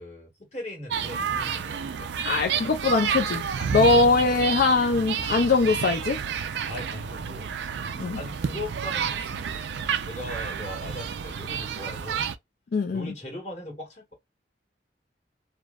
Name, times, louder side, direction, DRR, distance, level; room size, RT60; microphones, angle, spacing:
voice 1, 0.0-2.1 3.6-4.6 6.7-7.5 7.9-9.8 10.1-12.3 12.9-14.1, left 1 dB, 40° left, 1.6 m, -39 dB
sound 1, 0.9-12.4, right 7 dB, 75° right, 0.4 m, -30 dB
voice 2, 2.2-3.4 3.7-6.2 8.0-8.2 12.7-13.1, left 3 dB, 55° left, 0.4 m, -22 dB
3.3 x 2.0 x 2.3 m
head